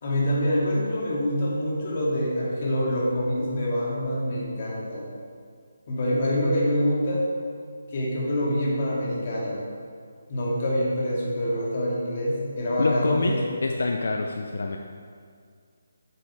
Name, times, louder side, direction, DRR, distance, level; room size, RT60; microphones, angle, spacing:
voice 1, 0.0-5.1 5.9-7.2 7.9-9.6 10.3-13.5, equal, 35° left, -5 dB, 2.2 m, -26 dB
voice 2, 12.8-14.8, left 3 dB, 70° left, 3 dB, 0.6 m, -26 dB
8.1 x 6.9 x 4.9 m, 2.1 s
hypercardioid pair, 170°, 0 cm